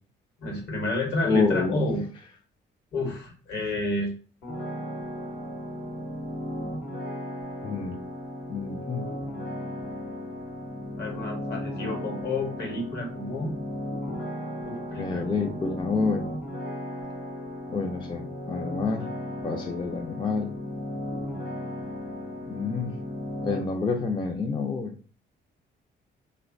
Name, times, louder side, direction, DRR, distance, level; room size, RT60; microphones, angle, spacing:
voice 1, 0.4-2.0 2.9-4.1 11.0-13.5 14.6-15.5, left 2 dB, 60° left, 2 dB, 1.0 m, -30 dB
voice 2, 1.2-1.8 7.6-8.0 8.5-9.0 15.0-16.2 17.7-19.1 19.4-20.5 22.5-22.9 23.4-24.9, left 4 dB, 25° left, 3 dB, 0.3 m, -28 dB
sound 1, 4.4-23.6, left 1 dB, 85° left, 1.0 m, -35 dB
2.9 x 2.1 x 2.5 m, 0.41 s
cardioid pair, 90°, 20 cm